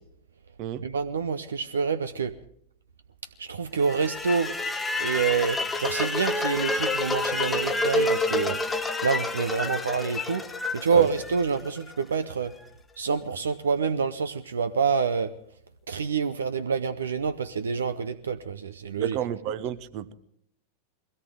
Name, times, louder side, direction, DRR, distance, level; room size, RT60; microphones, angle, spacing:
voice 1, 0.8-2.3 3.4-4.5 5.0-8.6 9.0-10.4 10.7-12.5 13.0-15.3 15.9-19.2, right 5 dB, 70° right, 12 dB, 0.7 m, -27 dB
sound 1, 3.8-11.9, left 2 dB, 10° left, 1.1 m, -28 dB
voice 2, 19.0-20.1, right 11 dB, 40° right, 13 dB, 1.0 m, -31 dB
22.0 x 17.0 x 3.8 m, 0.66 s
figure-of-eight pair, 90°, 0 cm